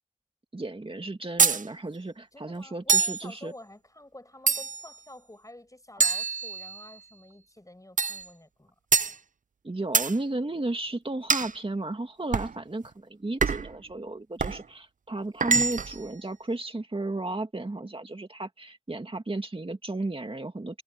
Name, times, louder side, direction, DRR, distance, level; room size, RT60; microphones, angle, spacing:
voice 1, 0.5-3.5 9.6-20.8, right 2 dB, 45° right, 2.2 m, -34 dB
sound 1, 1.4-1.6 2.9-3.2 4.5-4.9 6.0-6.9 8.0-8.3 8.9-9.2 9.9-10.2 11.3-11.5 12.3-12.6 13.4-13.7 14.4-14.6 15.4-16.0, right 5 dB, 80° right, 0.5 m, -25 dB
voice 2, 2.3-8.7, left 1 dB, 25° left, 6.0 m, -49 dB
wide cardioid pair, 65°, 13 cm